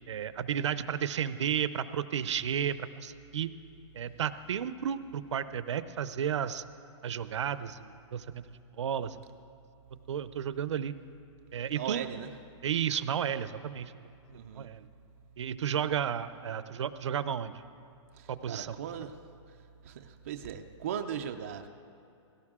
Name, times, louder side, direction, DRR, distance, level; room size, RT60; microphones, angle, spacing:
voice 1, 0.1-3.5 4.0-6.6 7.0-8.4 8.8-9.1 10.1-10.9 11.5-12.0 12.6-13.9 14.6-14.8 15.4-17.6 18.3-18.8, right 8 dB, 70° right, 14 dB, 0.6 m, -32 dB
voice 2, 11.8-12.3 14.3-14.7 18.1-19.1 19.8-21.7, right 8 dB, 25° right, 5 dB, 0.4 m, -38 dB
17.5 x 17.0 x 3.7 m, 2.6 s
hypercardioid pair, 180°, 16 cm